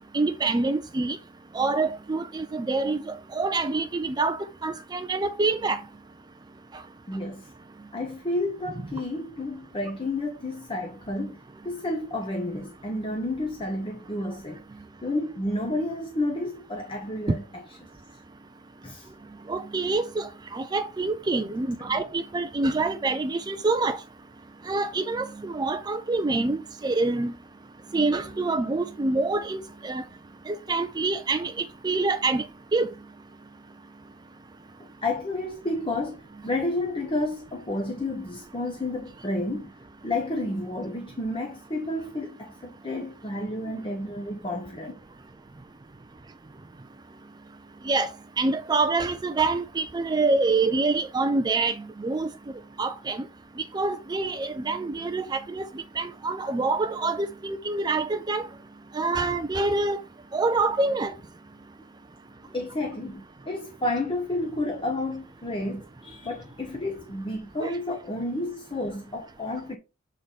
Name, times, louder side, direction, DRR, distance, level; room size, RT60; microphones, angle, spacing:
voice 1, 0.1-1.2 1.5-5.8 6.7-6.8 19.5-24.0 24.7-27.3 27.9-30.0 30.5-32.4 32.7-32.9 42.9-43.0 47.8-48.1 48.4-52.3 52.8-53.3 53.7-58.5 58.9-60.0 60.3-61.1 67.6-67.7, right 3 dB, 20° right, 0.4 m, -26 dB
voice 2, 7.1-7.5 7.9-14.6 15.0-17.6 18.8-19.1 21.9-22.0 35.0-45.0 62.5-69.8, left 2 dB, 25° left, 0.9 m, -31 dB
7.8 x 3.8 x 4.0 m
head